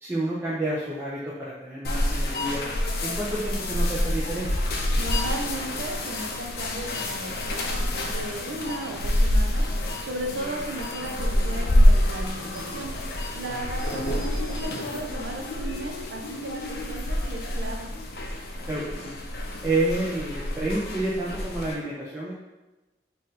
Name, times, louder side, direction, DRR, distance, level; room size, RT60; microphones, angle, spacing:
voice 1, 0.0-2.6 3.0-4.5 13.5-13.6 18.7-19.2 19.6-22.3, right 2 dB, 10° right, -7 dB, 0.5 m, -29 dB
sound 1, 1.8-21.7, left 1 dB, 55° left, 0.5 m, -27 dB
voice 2, 5.0-9.6 10.0-12.9 13.3-17.9, right 1 dB, 90° right, 1 dB, 0.7 m, -36 dB
4.2 x 2.5 x 3.9 m, 1.1 s
head